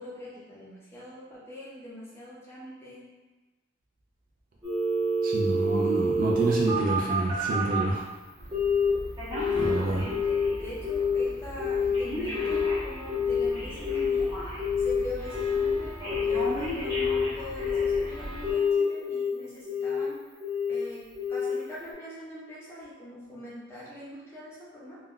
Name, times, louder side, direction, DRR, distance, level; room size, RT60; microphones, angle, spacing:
voice 1, 0.0-3.0 9.4-20.2 20.7-25.0, left 1 dB, 15° left, -8 dB, 0.7 m, -42 dB
Telephone, 4.6-7.9 8.5-8.9 9.2-10.5 10.8-11.2 11.6-15.0 15.3-15.7 16.0-18.1 18.4-19.3 19.7-20.0 20.4-20.8 21.2-21.5 21.9-22.0, left 3 dB, 20° right, 0.8 m, -27 dB
voice 2, 5.2-8.1 9.6-10.1, right 2 dB, 45° right, -2 dB, 0.3 m, -27 dB
sound 1, 8.4-18.5, equal, 90° right, 0.8 m, -41 dB
2.3 x 2.2 x 3.6 m, 1.2 s
head